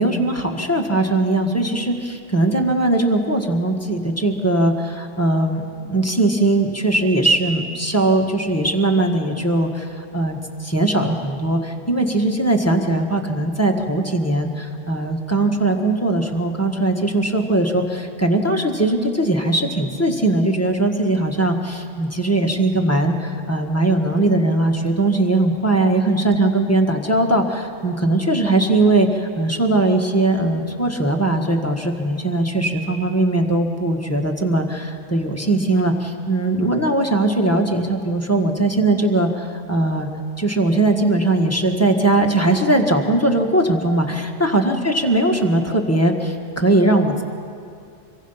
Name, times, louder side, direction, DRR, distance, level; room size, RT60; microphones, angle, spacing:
voice 1, 0.0-40.1 40.4-47.2, right 2 dB, 10° left, 2 dB, 1.6 m, -20 dB
26.5 x 23.5 x 5.8 m, 2.4 s
omnidirectional pair, 1.2 m